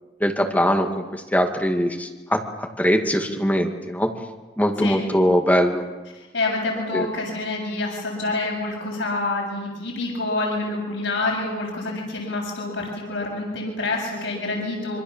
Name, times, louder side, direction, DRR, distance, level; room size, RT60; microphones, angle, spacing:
voice 1, 0.2-4.1 4.6-5.8 6.9-7.1, equal, 10° left, 3 dB, 2.0 m, -21 dB
voice 2, 4.8-5.1 6.1-15.0, left 2 dB, 85° left, -1 dB, 7.4 m, -27 dB
27.0 x 25.0 x 7.3 m, 1.2 s
head